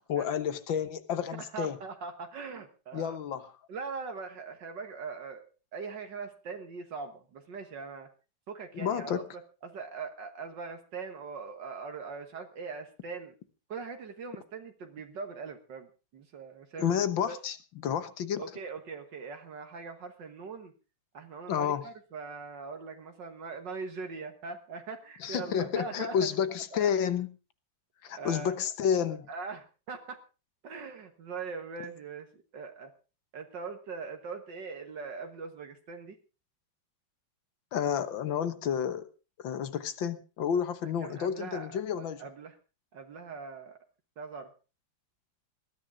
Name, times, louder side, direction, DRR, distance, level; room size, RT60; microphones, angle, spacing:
voice 1, 0.1-1.8 2.9-3.5 8.7-9.2 16.8-17.6 17.8-18.5 21.5-21.9 25.2-27.3 28.0-29.3 37.7-39.1 39.4-42.2, left 8 dB, 85° left, 12 dB, 2.0 m, -30 dB
voice 2, 1.3-3.2 3.7-5.4 5.7-8.1 8.5-13.3 13.7-15.9 16.1-16.9 17.3-17.4 18.4-20.7 21.1-26.3 26.7-26.9 28.1-28.7 29.3-30.2 30.6-32.9 33.3-36.2 41.0-42.6 42.9-43.8 44.2-44.5, right 4 dB, 70° right, 6 dB, 2.0 m, -41 dB
20.5 x 13.0 x 3.7 m, 0.33 s
omnidirectional pair, 2.0 m